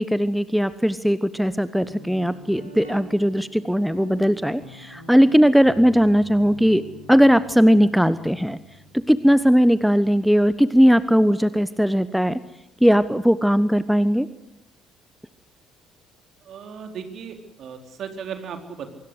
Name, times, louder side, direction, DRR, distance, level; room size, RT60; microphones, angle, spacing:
voice 1, 0.0-6.8 7.1-8.6 9.1-12.4 12.8-14.3, equal, ahead, 15 dB, 1.1 m, -18 dB
Guitar, 1.8-11.3, right 1 dB, 90° right, 5.2 m, -46 dB
voice 2, 16.5-18.9, right 7 dB, 50° right, 6 dB, 4.0 m, -36 dB
25.0 x 23.0 x 8.3 m, 0.81 s
figure-of-eight pair, 50°, 0 cm